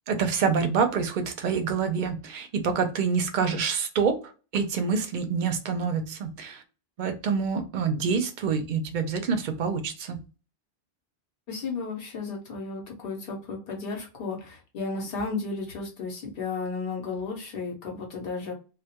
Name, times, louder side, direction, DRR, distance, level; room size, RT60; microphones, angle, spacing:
voice 1, 0.1-4.1 4.5-6.6 7.0-10.2, right 5 dB, 60° right, 6 dB, 0.6 m, -26 dB
voice 2, 11.5-18.5, left 4 dB, 70° left, 0 dB, 0.8 m, -34 dB
2.1 x 2.1 x 2.8 m, 0.33 s
omnidirectional pair, 1.0 m